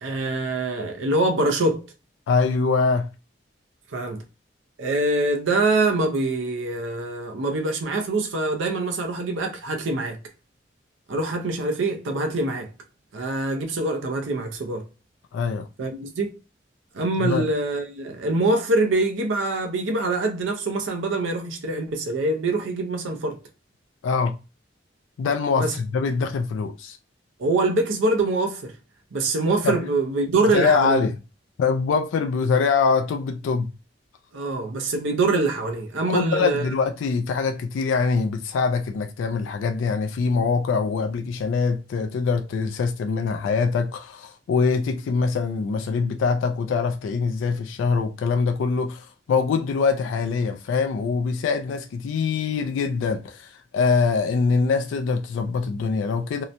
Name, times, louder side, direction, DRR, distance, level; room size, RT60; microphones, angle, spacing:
voice 1, 0.0-1.9 3.9-4.2 4.8-10.2 11.1-12.7 13.1-14.9 15.8-16.4 16.9-23.4 25.6-25.7 27.4-28.7 29.1-31.0 34.3-36.7, right 2 dB, 85° right, 0.5 m, -24 dB
voice 2, 2.3-3.1 15.3-15.7 17.2-17.4 24.0-24.3 25.2-27.0 29.6-29.8 30.4-31.2 31.6-33.7 36.1-56.4, left 5 dB, 85° left, 0.3 m, -23 dB
2.7 x 2.1 x 2.4 m
head